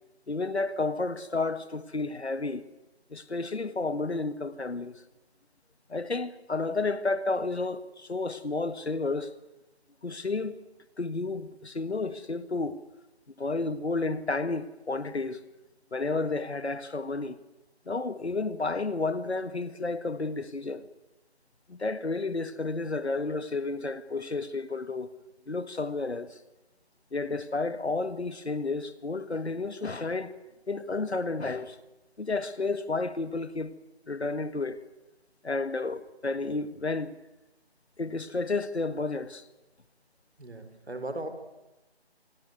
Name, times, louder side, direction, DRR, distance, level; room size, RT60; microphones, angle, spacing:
voice 1, 0.3-2.6 3.1-5.0 5.9-9.3 10.0-10.6 11.0-12.8 13.4-15.4 15.9-17.4 17.9-20.8 21.7-25.1 25.5-26.4 27.1-30.3 30.7-31.8 32.2-33.7 34.1-34.8 35.4-37.2 38.0-39.5, left 3 dB, 90° left, 1.8 m, -31 dB
voice 2, 40.4-41.3, right 2 dB, 80° right, 4.3 m, -37 dB
26.5 x 16.0 x 9.5 m
figure-of-eight pair, 165°, 32 cm